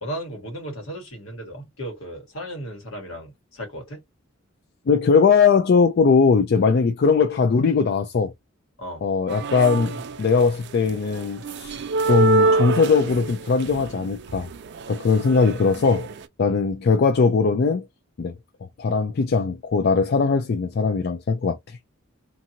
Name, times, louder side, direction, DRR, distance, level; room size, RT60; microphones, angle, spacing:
voice 1, 0.0-4.0 8.8-9.0 16.4-16.6, equal, 70° left, 1.4 m, -35 dB
voice 2, 4.9-8.3 9.0-11.8 12.1-14.5 14.9-16.1 16.4-17.8 18.2-18.3 18.8-21.8, left 5 dB, 50° left, 0.4 m, -20 dB
sound 1, 9.3-10.4 10.9-16.2, right 3 dB, 55° right, 0.4 m, -25 dB
2.8 x 2.6 x 2.6 m
head